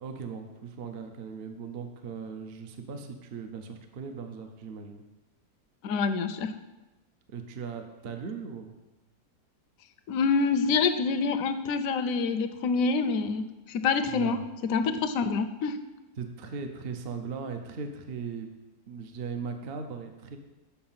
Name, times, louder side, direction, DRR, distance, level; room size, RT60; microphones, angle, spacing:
voice 1, 0.0-5.0 7.3-8.7 14.1-14.4 16.2-18.5 18.9-20.4, right 5 dB, 55° right, 5 dB, 0.7 m, -38 dB
voice 2, 5.8-6.5 10.1-13.4 13.7-14.4 14.7-15.8, left 4 dB, 70° left, 9 dB, 1.0 m, -26 dB
7.0 x 5.1 x 5.6 m, 1.0 s
omnidirectional pair, 1.6 m